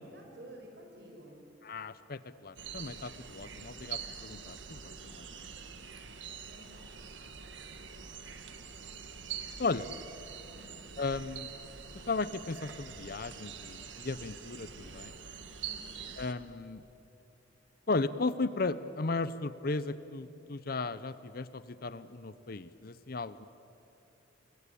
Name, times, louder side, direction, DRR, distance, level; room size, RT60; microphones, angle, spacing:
voice 1, 0.1-1.4 5.0-5.8 6.5-6.9 10.5-10.8 15.6-16.1, right 1 dB, 60° right, 2 dB, 6.0 m, -53 dB
voice 2, 1.7-5.0 9.6-9.9 11.0-11.5 12.1-15.1 16.2-16.8 17.9-23.5, left 3 dB, 50° left, 15 dB, 0.7 m, -35 dB
sound 1, 2.6-16.3, right 7 dB, 75° right, 1.7 m, -45 dB
29.5 x 22.5 x 8.5 m, 3.0 s
head